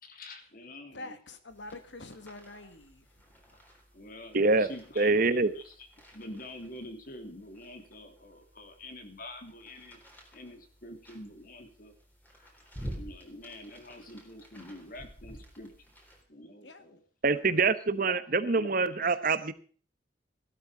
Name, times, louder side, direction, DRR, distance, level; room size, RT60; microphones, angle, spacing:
voice 1, 0.0-1.2 3.9-5.7 6.1-10.0 10.3-11.9 12.9-15.7 16.3-17.0 17.9-18.7 19.1-19.2, left 1 dB, 50° left, 6 dB, 3.1 m, -46 dB
voice 2, 0.9-3.4 16.6-17.0 17.3-17.4, left 2 dB, 90° left, 9 dB, 2.0 m, -46 dB
sound 1, 1.5-16.2, equal, 10° left, 3.7 m, -50 dB
voice 3, 4.3-4.7 5.0-5.5 17.2-19.5, right 3 dB, 50° right, 13 dB, 1.1 m, -25 dB
16.0 x 12.5 x 4.9 m, 0.42 s
head